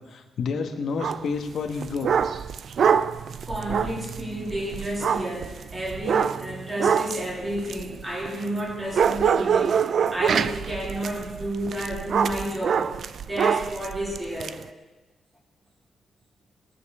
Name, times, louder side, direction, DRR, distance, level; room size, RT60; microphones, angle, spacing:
voice 1, 0.0-2.1, left 5 dB, 60° left, 4 dB, 1.3 m, -29 dB
sound 1, 1.0-1.3 1.7-8.6 8.9-14.5, right 7 dB, 50° right, 0.4 m, -25 dB
voice 2, 3.5-14.6, right 1 dB, 15° right, -1 dB, 3.1 m, -31 dB
19.5 x 6.9 x 7.2 m, 1.2 s
wide cardioid pair, 160°, 0 cm